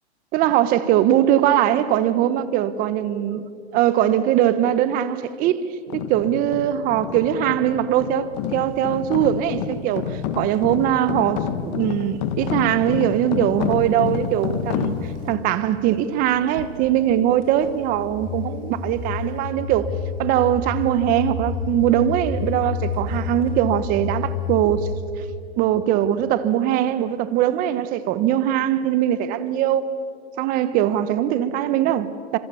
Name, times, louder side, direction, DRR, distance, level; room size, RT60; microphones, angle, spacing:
voice 1, 0.3-3.4 3.7-5.6 5.9-15.0 15.2-19.9 20.2-24.9 25.6-29.9 30.4-32.4, right 11 dB, 25° right, 1.1 m, -21 dB
sound 1, 5.9-15.3, left 9 dB, 35° left, 1.8 m, -29 dB
sound 2, 10.1-10.9 11.8-12.1 12.4-13.0 14.6-15.5 15.9-16.1 16.5-18.1 22.5-24.1 25.5-25.6, right 6 dB, 55° right, 5.4 m, -44 dB
sound 3, 15.0-25.0, left 5 dB, 15° left, 2.8 m, -30 dB
29.5 x 26.0 x 7.0 m
hypercardioid pair, 150°, 34 cm